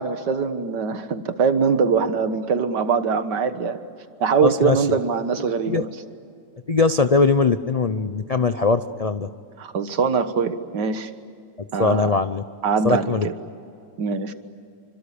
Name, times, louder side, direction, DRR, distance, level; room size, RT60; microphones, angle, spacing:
voice 1, 0.0-3.8 4.2-5.9 9.6-11.1 11.7-12.1 12.6-13.3 14.0-14.3, right 5 dB, 80° right, 10 dB, 2.0 m, -22 dB
voice 2, 4.4-5.0 5.7-5.8 6.7-9.3 11.8-12.4 12.8-13.3, left 4 dB, 70° left, 11 dB, 0.3 m, -21 dB
27.5 x 25.5 x 8.5 m, 2.5 s
omnidirectional pair, 1.8 m